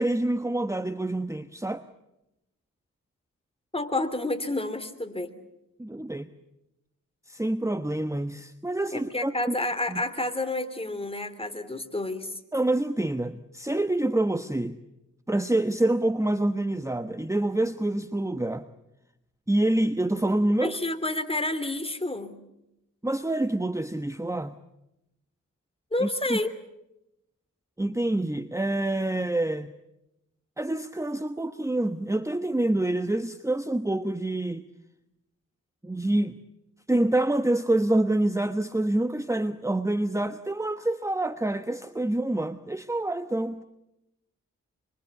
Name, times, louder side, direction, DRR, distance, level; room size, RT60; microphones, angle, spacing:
voice 1, 0.0-1.8 5.8-6.3 7.3-9.5 9.9-10.0 12.5-14.8 15.3-18.7 19.5-20.8 23.0-24.6 26.0-26.4 27.8-29.7 30.6-34.6 35.8-36.4 36.9-43.6, right 1 dB, 10° right, 10 dB, 1.1 m, -27 dB
voice 2, 3.7-5.3 8.9-12.4 20.6-22.3 25.9-26.5, left 2 dB, 15° left, 8 dB, 3.1 m, -29 dB
25.5 x 25.5 x 8.3 m, 0.87 s
cardioid pair, 65°, 33 cm